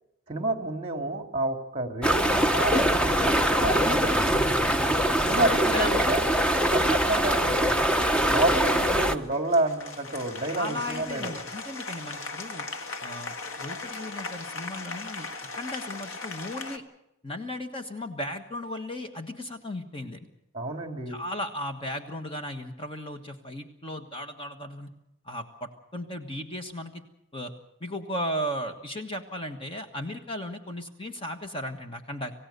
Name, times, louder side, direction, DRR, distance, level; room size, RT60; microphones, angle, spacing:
voice 1, 0.3-4.3 5.2-6.2 6.7-7.7 8.3-11.3 20.5-21.2, right 2 dB, 25° right, 5 dB, 2.4 m, -29 dB
sound 1, 2.0-9.2, right 1 dB, 5° left, 0.8 m, -23 dB
voice 2, 5.4-6.1 7.1-7.3 10.6-12.6 13.0-15.3 15.6-16.8 17.2-20.3 21.1-24.9 25.3-27.0 27.3-27.5 27.8-32.3, left 1 dB, 25° left, 6 dB, 1.4 m, -36 dB
Applause, 9.2-16.8, left 3 dB, 70° left, 1.7 m, -38 dB
27.5 x 16.5 x 6.8 m, 0.85 s
head